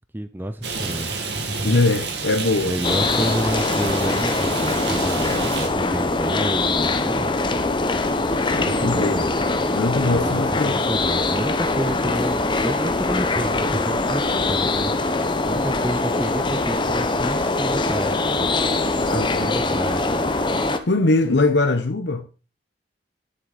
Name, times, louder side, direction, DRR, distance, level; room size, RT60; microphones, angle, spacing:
voice 1, 0.1-1.1 2.6-7.3 8.5-9.4 10.0-15.0 15.5-18.5 18.7-20.3, right 1 dB, 10° right, 0.5 m, -29 dB
Rain, 0.6-5.7, right 3 dB, 70° right, 2.1 m, -29 dB
voice 2, 1.6-2.7 8.5-9.2 9.8-10.8 19.1-19.5 20.9-22.3, left 2 dB, 70° left, 0.9 m, -21 dB
sound 1, 2.8-20.8, left 2 dB, 25° left, 0.8 m, -22 dB
10.0 x 7.7 x 4.0 m
head